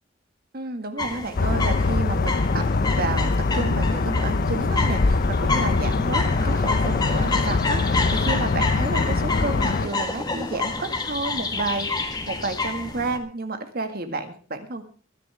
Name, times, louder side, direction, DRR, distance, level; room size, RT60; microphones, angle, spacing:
voice 1, 0.5-2.7 3.0-14.8, right 2 dB, 50° right, 7 dB, 2.0 m, -31 dB
sound 1, 1.0-13.2, left 3 dB, 20° left, 1.7 m, -29 dB
sound 2, 1.3-9.9, left 3 dB, 50° left, 0.6 m, -23 dB
22.5 x 10.5 x 3.6 m, 0.37 s
head